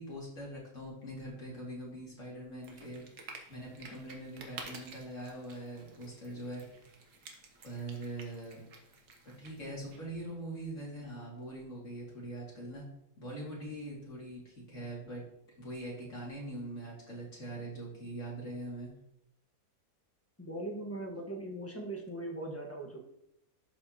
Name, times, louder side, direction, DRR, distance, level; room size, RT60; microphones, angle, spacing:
voice 1, 0.0-3.0 3.5-6.6 7.6-8.6 9.2-12.8 13.2-15.2 15.6-18.9, right 1 dB, 50° left, -4 dB, 2.9 m, -42 dB
sound 1, 2.6-10.0, right 4 dB, 75° right, 1.7 m, -51 dB
voice 2, 20.4-23.0, right 1 dB, 10° left, 0 dB, 1.2 m, -40 dB
11.5 x 5.2 x 2.9 m, 0.79 s
omnidirectional pair, 1.7 m